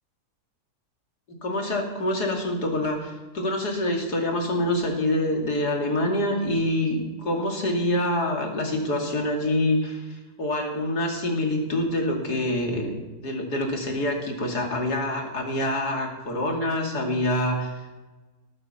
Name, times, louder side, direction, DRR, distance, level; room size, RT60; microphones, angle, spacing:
voice 1, 1.3-12.9 13.2-17.9, left 1 dB, 80° left, 2 dB, 3.2 m, -26 dB
19.0 x 8.8 x 7.1 m, 1.2 s
omnidirectional pair, 1.7 m